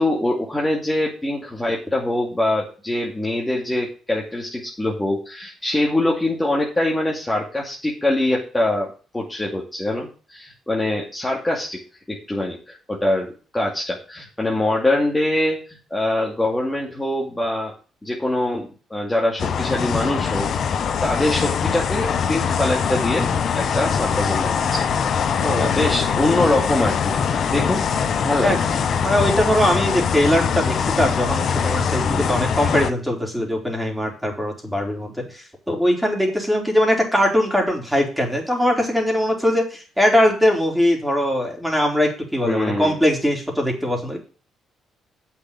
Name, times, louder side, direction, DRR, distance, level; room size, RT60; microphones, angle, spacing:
voice 1, 0.0-11.8 12.1-17.7 18.0-23.3 23.5-24.8 25.2-27.8 28.2-28.6 32.0-32.4 42.4-43.0, left 1 dB, 10° left, -2 dB, 2.5 m, -24 dB
sound 1, 19.4-32.9, left 6 dB, 60° left, 1.0 m, -22 dB
voice 2, 25.4-25.7 28.4-28.6 29.0-44.2, equal, 5° right, 0 dB, 4.1 m, -21 dB
8.1 x 6.0 x 7.2 m, 0.37 s
cardioid pair, 90°, 0 cm